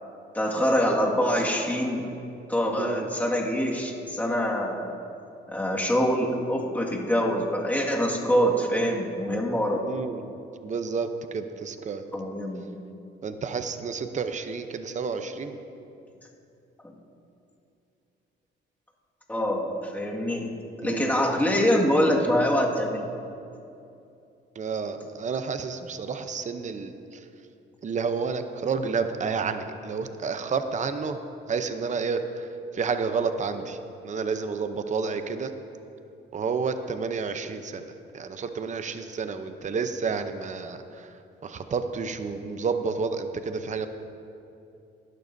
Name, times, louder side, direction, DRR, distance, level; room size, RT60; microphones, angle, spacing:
voice 1, 0.3-2.0 2.5-4.9 5.5-9.8 12.1-12.7 16.8-16.9 19.3-20.5 20.8-23.1, equal, 10° left, -2 dB, 1.9 m, -25 dB
voice 2, 2.8-3.1 9.9-10.2 10.6-12.0 13.2-15.6 20.8-21.2 24.6-27.2 27.8-31.2 31.5-32.5 32.7-33.8 34.0-35.5 36.3-37.8 38.1-41.1 41.4-43.9, right 5 dB, 35° right, 8 dB, 0.8 m, -30 dB
18.5 x 12.0 x 2.7 m, 2.7 s
cardioid pair, 90°, 20 cm